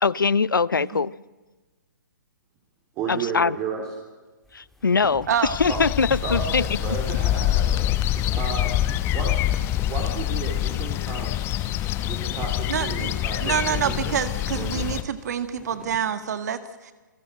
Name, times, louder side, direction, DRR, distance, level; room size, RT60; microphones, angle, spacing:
voice 1, 0.0-1.1 3.1-3.6 4.5-6.6, left 5 dB, 85° left, 21 dB, 0.6 m, -22 dB
voice 2, 0.8-1.1 5.3-5.6 12.7-13.1 13.4-16.9, right 8 dB, 55° right, 10 dB, 1.7 m, -27 dB
voice 3, 3.0-3.8 5.7-5.9 6.2-8.8 9.1-9.4 9.8-11.4 12.0-14.2 14.5-14.9, right 5 dB, 25° right, 0 dB, 3.8 m, -33 dB
sound 1, 4.4-16.0, left 1 dB, ahead, 2.9 m, -46 dB
sound 2, 5.5-15.0, left 13 dB, 20° left, 1.0 m, -25 dB
27.5 x 17.5 x 7.7 m, 1.3 s
figure-of-eight pair, 130°, 11 cm